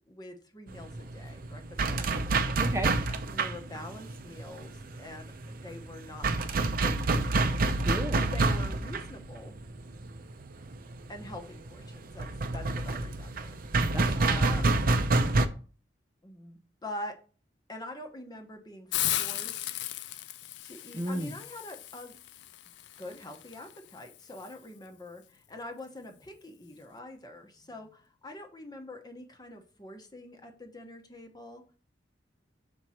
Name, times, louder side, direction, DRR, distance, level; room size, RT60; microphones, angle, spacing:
voice 1, 0.0-2.7 3.3-6.3 6.8-7.6 8.2-9.5 11.1-13.6 14.2-14.7 16.2-17.2 17.7-19.7 20.6-22.2 23.0-31.6, left 1 dB, 25° left, 3 dB, 1.0 m, -45 dB
sound 1, 0.7-15.5, right 3 dB, 55° right, 0.6 m, -28 dB
voice 2, 2.6-3.0 7.8-8.2 13.9-14.0 14.3-14.6 20.9-21.3, right 1 dB, 15° right, 4 dB, 0.6 m, -33 dB
Hiss, 18.9-24.5, left 13 dB, 70° left, 0.4 m, -36 dB
6.2 x 4.6 x 4.3 m, 0.38 s
head